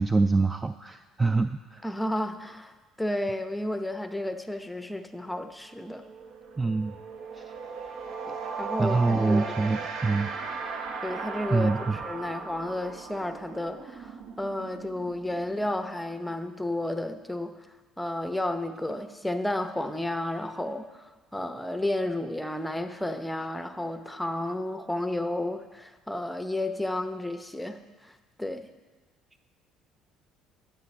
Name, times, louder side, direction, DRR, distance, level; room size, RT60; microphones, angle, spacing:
voice 1, 0.0-1.8 6.6-6.9 8.8-10.3 11.5-12.0, right 3 dB, 20° right, 10 dB, 0.3 m, -25 dB
voice 2, 1.8-6.0 8.3-9.7 11.0-17.7 18.0-28.7, left 1 dB, 5° left, 9 dB, 0.7 m, -32 dB
sound 1, 5.3-5.5 5.8-16.3, right 5 dB, 60° right, 0.9 m, -38 dB
11.0 x 6.6 x 4.3 m, 1.3 s
hypercardioid pair, 65°, 0 cm